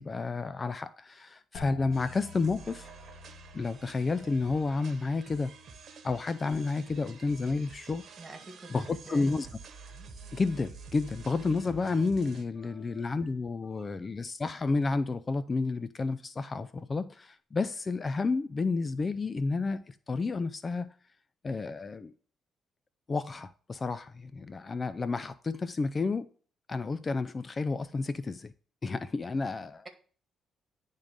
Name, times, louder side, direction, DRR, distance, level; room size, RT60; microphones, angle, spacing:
voice 1, 0.0-2.9 3.5-5.5 6.0-8.0 8.7-9.5 10.3-20.9 21.4-22.1 23.1-26.3 26.7-28.5 28.8-29.9, left 3 dB, 30° left, 0.4 m, -31 dB
sound 1, 1.5-7.2 7.5-8.2 8.7-9.2, left 7 dB, 60° left, 0.9 m, -52 dB
sound 2, 1.9-12.4, right 5 dB, 60° right, 1.2 m, -49 dB
voice 2, 8.2-9.3 12.6-13.3 13.7-13.9, right 3 dB, 25° right, 2.0 m, -49 dB
10.5 x 3.7 x 5.1 m
cardioid pair, 90°, 0 cm